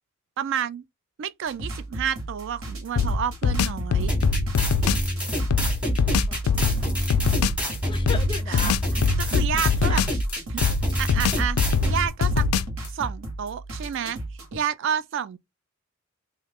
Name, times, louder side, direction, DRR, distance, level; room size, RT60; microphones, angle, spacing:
voice 1, 0.4-0.8 1.2-4.1 8.5-8.7 9.2-10.0 10.5-10.6 11.0-11.6 11.9-12.5 12.9-14.2 14.5-15.4, right 8 dB, 55° right, 0.3 m, -29 dB
sound 1, 1.5-14.6, right 2 dB, 80° right, 1.2 m, -36 dB
sound 2, 3.0-5.1 5.5-7.6 8.1-10.3 10.6-12.9, left 5 dB, 90° left, 0.3 m, -23 dB
sound 3, 4.1-12.1, equal, 5° right, 0.9 m, -27 dB
voice 2, 5.5-7.4 7.9-8.8 9.6-10.0, left 3 dB, 20° left, 0.5 m, -38 dB
3.0 x 2.4 x 3.4 m
head